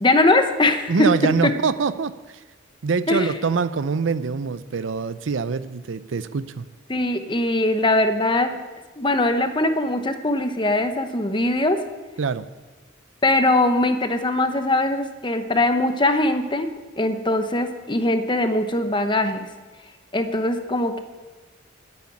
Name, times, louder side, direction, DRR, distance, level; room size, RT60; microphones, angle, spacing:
voice 1, 0.0-1.1 1.4-1.5 3.1-3.3 6.9-8.6 9.0-11.8 13.2-19.5 20.1-21.0, left 2 dB, 25° left, 8 dB, 0.8 m, -21 dB
voice 2, 0.9-2.4 2.8-6.7 12.2-12.4, right 5 dB, 70° right, 14 dB, 0.5 m, -24 dB
9.9 x 8.4 x 9.8 m, 1.3 s
head